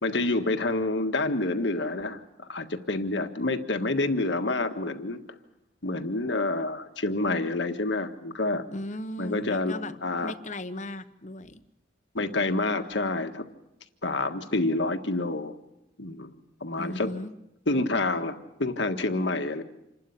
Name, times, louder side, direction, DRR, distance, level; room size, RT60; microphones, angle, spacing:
voice 1, 0.0-2.2 2.5-5.2 5.8-8.6 9.2-10.3 12.1-13.5 14.0-15.5 16.0-16.3 16.6-17.1 17.7-19.6, left 2 dB, 70° left, 7 dB, 1.6 m, -28 dB
voice 2, 8.7-9.9 10.2-11.6 16.8-17.3, left 1 dB, 40° left, 11 dB, 1.0 m, -36 dB
27.5 x 12.5 x 10.0 m, 0.89 s
head